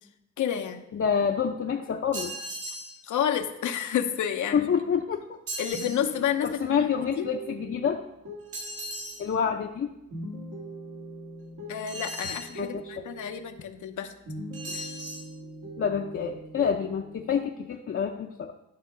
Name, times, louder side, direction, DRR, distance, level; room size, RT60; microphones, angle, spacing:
voice 1, 0.4-0.8 3.0-4.7 5.6-6.9 7.2-7.3 11.7-14.1 14.7-14.9, left 9 dB, 80° left, 7 dB, 0.8 m, -30 dB
voice 2, 0.9-2.3 4.5-5.4 6.4-8.0 9.2-9.9 12.6-12.9 15.8-18.5, left 7 dB, 45° left, 1 dB, 0.6 m, -27 dB
sound 1, 2.1-2.9 5.5-6.0 8.5-9.2 11.9-12.5 14.5-15.3, right 1 dB, 50° right, 2.5 m, -37 dB
sound 2, 5.7-14.0 14.3-17.4, right 1 dB, 80° right, 2.0 m, -43 dB
10.5 x 3.6 x 6.0 m, 0.89 s
cardioid pair, 90°, 30 cm